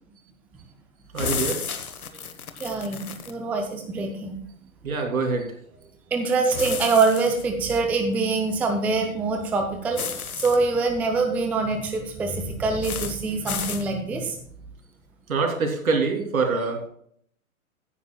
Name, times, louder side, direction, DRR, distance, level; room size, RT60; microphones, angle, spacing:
voice 1, 1.1-1.6 4.8-5.6 15.3-16.8, right 4 dB, 75° right, 2 dB, 3.2 m, -25 dB
sound 1, 1.2-3.3 6.5-7.4 9.9-10.6 12.8-13.1 13.5-13.8, left 6 dB, 80° left, 1.3 m, -32 dB
voice 2, 2.6-4.3 6.1-14.4, right 3 dB, 5° right, 4 dB, 0.5 m, -24 dB
15.0 x 9.6 x 2.3 m, 0.64 s
hypercardioid pair, 120°, 42 cm